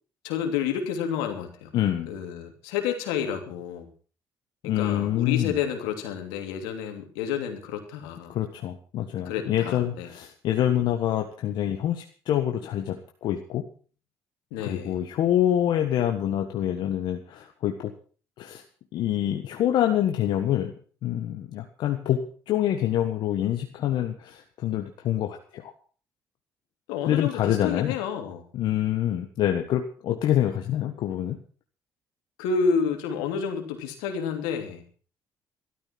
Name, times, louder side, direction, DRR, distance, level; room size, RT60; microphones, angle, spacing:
voice 1, 0.2-1.7 2.1-3.9 4.6-8.3 9.2-10.1 14.5-15.0 26.9-28.4 32.4-34.8, left 6 dB, 90° left, 5 dB, 2.9 m, -30 dB
voice 2, 1.7-2.1 4.6-5.6 8.3-13.7 14.6-17.9 18.4-18.6 18.9-25.7 27.1-28.0 28.5-31.4, left 11 dB, 70° left, 5 dB, 1.5 m, -26 dB
13.0 x 13.0 x 6.0 m, 0.41 s
supercardioid pair, 70°, 8 cm